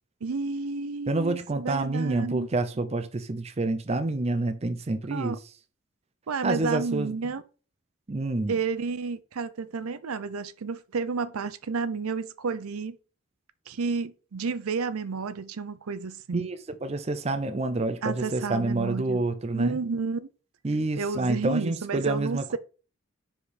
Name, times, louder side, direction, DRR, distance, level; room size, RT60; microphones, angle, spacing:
voice 1, 0.2-2.5 5.1-5.4 6.3-7.4 8.5-13.0 13.7-16.5 18.0-19.3 19.5-20.3 21.0-22.6, right 4 dB, 90° right, 0.6 m, -31 dB
voice 2, 1.1-5.4 6.4-7.1 8.1-8.6 16.3-19.8 20.6-22.6, right 2 dB, 30° right, 0.5 m, -28 dB
5.0 x 4.9 x 4.2 m
head